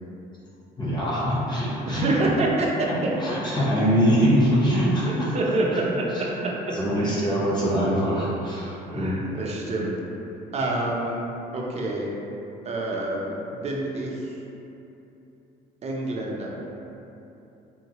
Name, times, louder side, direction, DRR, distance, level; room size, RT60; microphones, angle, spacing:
voice 1, 0.8-2.1 3.2-5.3 5.7-5.8 6.3-6.4 6.7-9.1, equal, 25° left, -7 dB, 0.9 m, -23 dB
voice 2, 1.8-2.9 5.0-6.0 6.4-6.5 7.0-7.3 8.9-9.9 10.5-12.1 12.6-14.4 15.8-16.5, right 2 dB, 40° right, -2 dB, 0.6 m, -27 dB
3.8 x 2.1 x 2.9 m, 2.8 s
cardioid pair, 110°, 17 cm